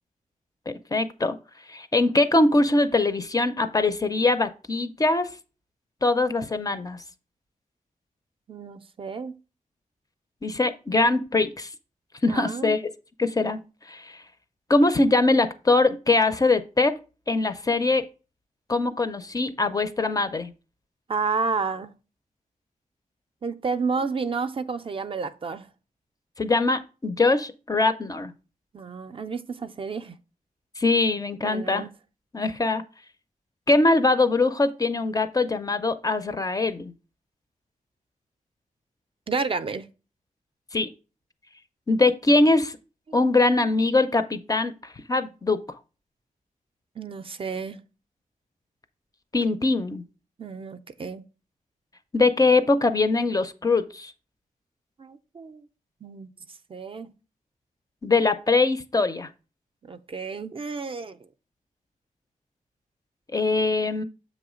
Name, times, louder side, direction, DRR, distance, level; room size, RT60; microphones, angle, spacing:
voice 1, 0.7-1.4 1.7-5.3 6.0-7.0 10.4-11.7 12.2-12.9 13.2-14.2 14.7-16.9 17.3-18.1 18.7-20.5 26.4-28.3 30.8-31.9 32.3-32.8 33.7-36.9 40.7-40.9 41.9-42.8 43.1-45.6 49.3-50.0 52.1-54.1 58.0-59.3 63.3-64.0, left 3 dB, 25° left, 0.4 m, -22 dB
voice 2, 8.5-9.4 12.3-12.8 21.1-21.9 23.4-25.7 28.7-30.2 31.4-31.9 39.3-39.9 43.1-43.2 47.0-47.8 50.4-51.2 55.0-55.7 56.0-56.3 56.7-57.1 59.8-61.2, right 4 dB, 40° right, 0.4 m, -31 dB
7.5 x 3.1 x 4.9 m
wide cardioid pair, 175°, 14 cm